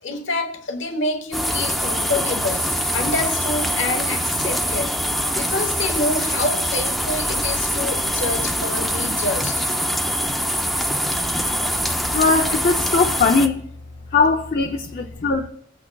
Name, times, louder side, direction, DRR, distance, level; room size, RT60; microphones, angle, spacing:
voice 1, 0.0-9.6, left 2 dB, 75° left, 1.2 m, -27 dB
sound 1, 1.3-13.5, equal, ahead, 0.6 m, -23 dB
voice 2, 12.1-13.6 14.1-15.5, left 4 dB, 50° left, 0.6 m, -19 dB
18.0 x 8.5 x 2.3 m
head